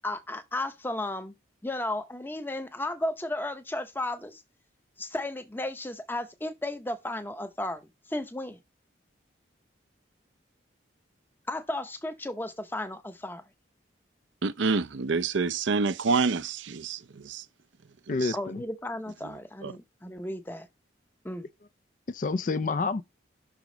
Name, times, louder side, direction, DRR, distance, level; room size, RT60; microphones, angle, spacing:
voice 1, 0.0-1.3 1.6-4.4 5.0-8.6 11.5-13.4 18.3-20.7 21.2-21.5, left 1 dB, 10° left, 0.7 m, -34 dB
voice 2, 14.4-17.4 18.1-18.4 19.2-19.7, right 4 dB, 75° right, 0.6 m, -28 dB
voice 3, 18.1-18.6 22.1-23.0, left 4 dB, 40° left, 0.4 m, -28 dB
6.1 x 4.9 x 3.8 m
head